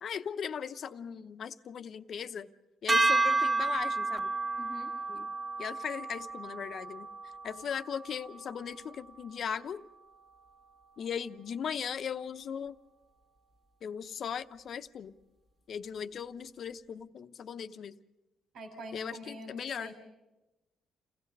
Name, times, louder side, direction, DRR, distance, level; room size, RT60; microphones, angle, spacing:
voice 1, 0.0-2.5 2.8-4.3 5.1-5.3 5.6-7.1 7.4-9.8 11.0-12.7 13.8-15.1 15.7-18.0 18.9-19.9, left 7 dB, 60° left, 10 dB, 0.9 m, -38 dB
sound 1, 2.9-9.2, right 3 dB, 25° right, 1.8 m, -31 dB
voice 2, 4.6-4.9 18.5-19.9, equal, 80° right, 3 dB, 3.6 m, -45 dB
29.5 x 16.5 x 5.4 m, 1.0 s
cardioid pair, 90°, 0 cm